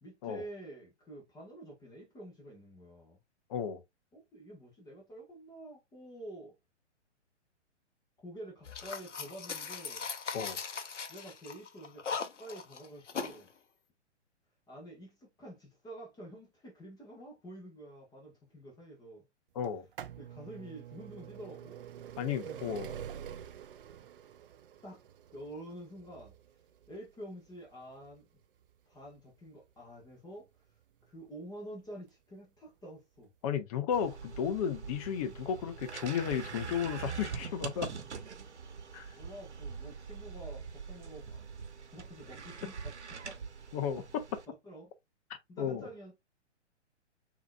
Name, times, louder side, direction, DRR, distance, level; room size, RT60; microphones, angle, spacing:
voice 1, 0.0-3.2 4.1-6.5 8.2-10.1 11.1-13.5 14.7-19.3 20.2-21.8 22.4-23.0 24.8-25.0 25.3-26.4 26.9-28.3 28.9-30.5 31.1-33.3 39.1-41.5 41.8-43.7 44.0-44.1 44.5-44.9 45.5-46.1, right 1 dB, 10° left, 1.3 m, -48 dB
voice 2, 3.5-3.8 10.3-10.6 19.5-19.8 22.2-22.9 33.4-37.9 38.9-39.1 43.7-44.0 45.6-45.9, left 8 dB, 30° left, 0.8 m, -33 dB
sound 1, 8.6-13.4, left 5 dB, 75° left, 0.8 m, -39 dB
sound 2, 19.6-31.3 32.1-32.2 33.2-33.3 33.4-33.5, right 9 dB, 50° right, 0.5 m, -47 dB
sound 3, 33.9-44.5, right 6 dB, 70° right, 1.2 m, -43 dB
5.9 x 2.9 x 2.2 m
figure-of-eight pair, 120°, 36 cm